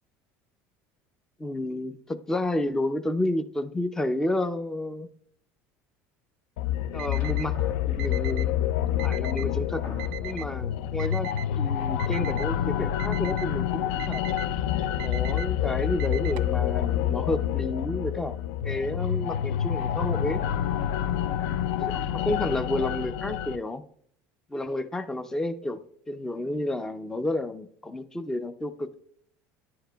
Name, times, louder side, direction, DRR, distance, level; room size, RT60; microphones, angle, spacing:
voice 1, 1.4-5.1 6.9-7.6 7.9-8.5 9.0-9.8 10.2-14.3 15.0-18.3 18.6-20.4 21.8-23.8 24.5-25.8 26.1-29.0, left 1 dB, 10° left, 10 dB, 0.4 m, -31 dB
sound 1, 6.6-23.6, left 10 dB, 85° left, 0.3 m, -28 dB
Alarm, 7.0-7.5 8.0-8.5 9.0-9.5 10.0-10.5 11.0-11.5 12.0-12.5 13.0-13.5 14.0-14.5 15.0-15.5 16.0-16.5, right 14 dB, 75° right, 0.4 m, -39 dB
sound 2, 7.1-8.7 9.3-9.4 9.8-10.7, left 2 dB, 60° left, 1.1 m, -41 dB
10.5 x 4.7 x 2.2 m, 0.64 s
cardioid pair, 135°, 6 cm